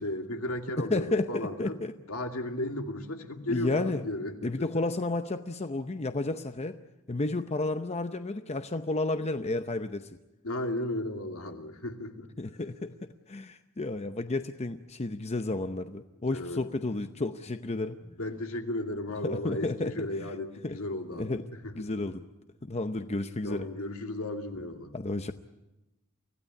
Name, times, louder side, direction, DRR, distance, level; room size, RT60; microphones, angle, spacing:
voice 1, 0.0-1.8 2.1-4.7 10.4-12.3 16.3-16.6 18.0-21.9 23.4-24.9, left 1 dB, 75° left, 4 dB, 2.6 m, -35 dB
voice 2, 0.8-1.9 3.5-4.0 4.4-6.8 7.1-10.1 12.4-18.0 19.2-20.3 20.6-20.8 21.2-21.4 21.7-22.3 22.6-23.7 24.9-25.3, left 2 dB, 30° left, 9 dB, 0.7 m, -32 dB
25.0 x 16.0 x 9.7 m, 0.98 s
head